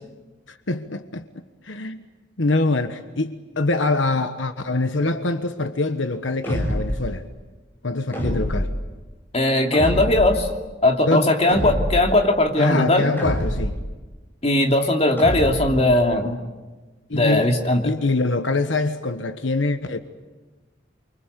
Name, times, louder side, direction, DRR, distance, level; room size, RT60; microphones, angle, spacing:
voice 1, 0.5-1.2 1.6-2.0 2.4-7.2 7.8-8.7 11.1-11.3 12.6-13.8 17.1-17.5 17.8-20.0, left 2 dB, 80° left, 9 dB, 1.3 m, -24 dB
sound 1, 6.4-7.1 8.1-8.8 9.7-10.4 11.5-12.1 13.2-13.8 15.2-15.8, equal, 10° left, 6.5 m, -25 dB
voice 2, 9.3-10.5 10.8-13.1 14.4-16.4 17.1-17.9, left 1 dB, 35° left, 2 dB, 2.8 m, -19 dB
29.0 x 24.5 x 8.3 m, 1.3 s
head